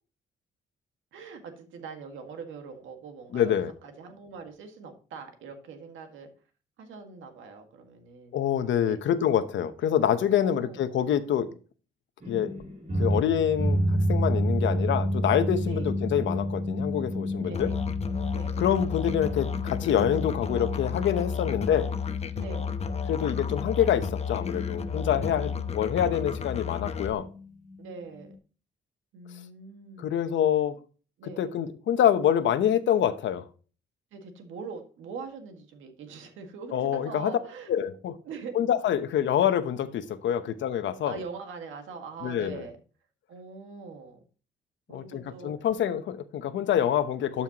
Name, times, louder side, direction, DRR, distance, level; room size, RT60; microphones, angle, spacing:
voice 1, 1.1-3.5 3.8-6.3 6.8-8.4 8.9-9.0 10.2-10.8 15.6-15.9 17.3-17.7 18.3-18.6 21.3-21.6 22.3-22.7 24.8-25.8 27.8-28.3 29.1-30.1 30.7-30.8 31.2-31.5 34.1-37.7 38.2-38.5 41.0-42.8 43.3-44.2 44.9-45.5, right 5 dB, 85° right, 5 dB, 1.8 m, -43 dB
voice 2, 3.3-3.7 8.3-11.5 12.3-12.5 13.0-13.8 14.1-17.7 18.6-22.0 23.1-27.3 30.0-30.8 31.2-33.5 36.7-37.3 37.7-38.2 38.5-41.2 42.2-42.6 44.9-47.4, left 9 dB, 70° left, 11 dB, 0.9 m, -26 dB
sound 1, 12.2-28.3, equal, 40° right, 3.3 m, -31 dB
Musical instrument, 17.5-27.1, left 6 dB, 35° left, 0.8 m, -32 dB
12.0 x 5.7 x 3.0 m, 0.37 s
cardioid pair, 90°, 20 cm